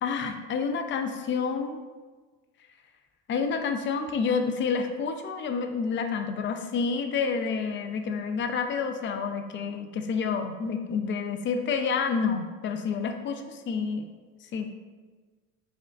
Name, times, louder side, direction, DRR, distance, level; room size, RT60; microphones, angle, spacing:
voice 1, 0.0-1.8 3.3-14.1 14.5-14.7, left 5 dB, 35° left, 6 dB, 0.4 m, -29 dB
5.1 x 2.4 x 2.3 m, 1.3 s
supercardioid pair, 100°, 36 cm